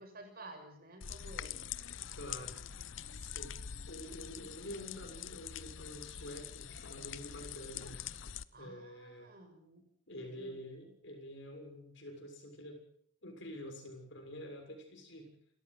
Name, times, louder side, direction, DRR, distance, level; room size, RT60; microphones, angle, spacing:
voice 1, 0.0-1.6 8.5-9.8 10.2-10.5, right 2 dB, 50° right, 5 dB, 6.7 m, -52 dB
sound 1, 1.0-8.4, left 8 dB, 85° left, 0.8 m, -45 dB
voice 2, 2.2-2.6 3.1-3.6 3.9-8.0 8.6-9.3 10.1-12.8 13.2-15.4, equal, 70° left, 4 dB, 6.8 m, -48 dB
28.5 x 14.0 x 7.8 m, 0.63 s
head